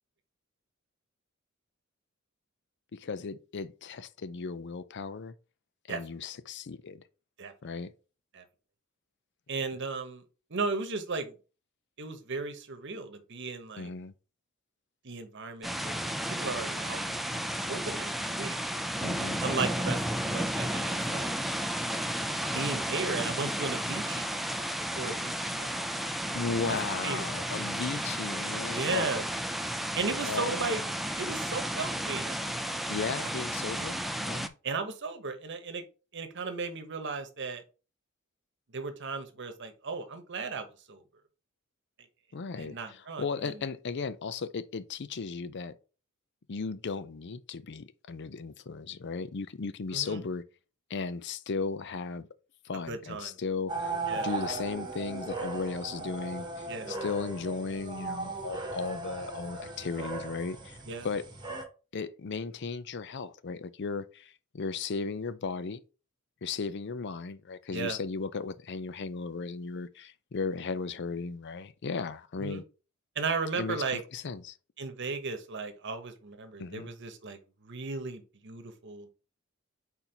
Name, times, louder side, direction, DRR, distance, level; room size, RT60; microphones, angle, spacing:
voice 1, 2.9-5.3 5.9-7.0 7.6-7.9 13.8-14.1 19.0-19.4 26.1-29.1 30.2-30.8 32.9-34.0 34.2-34.5 42.3-45.8 46.5-50.4 50.9-52.3 52.6-60.8 61.0-61.3 61.9-65.8 66.4-72.6 73.6-74.6 76.6-76.9, left 4 dB, 55° left, 0.5 m, -36 dB
voice 2, 9.5-10.2 10.5-11.3 12.0-13.9 15.0-17.4 17.7-18.8 19.4-21.3 22.5-24.5 25.0-25.8 26.2-26.4 26.7-26.8 27.0-27.2 28.7-29.3 29.9-30.8 31.2-32.8 33.2-33.3 34.6-35.8 36.1-37.6 38.7-41.0 42.4-43.6 49.9-50.2 52.9-53.4 54.1-54.3 56.7-57.0 60.9-61.1 67.7-68.0 72.4-72.6 73.1-74.0 74.8-79.1, right 4 dB, 60° right, 1.0 m, -36 dB
sound 1, 15.6-34.5, equal, ahead, 0.5 m, -33 dB
sound 2, 53.7-61.6, right 3 dB, 20° right, 1.3 m, -37 dB
4.5 x 4.2 x 5.1 m
head